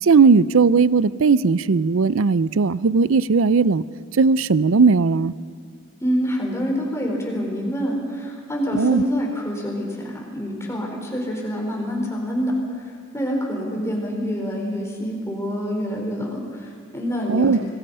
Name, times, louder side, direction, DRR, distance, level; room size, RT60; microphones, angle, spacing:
voice 1, 0.0-3.8 4.2-5.3 8.7-9.0 17.3-17.6, right 4 dB, 75° right, 18 dB, 0.5 m, -17 dB
voice 2, 6.0-12.8 13.1-17.7, equal, 15° left, 0 dB, 4.3 m, -26 dB
25.5 x 20.0 x 5.6 m, 2.2 s
head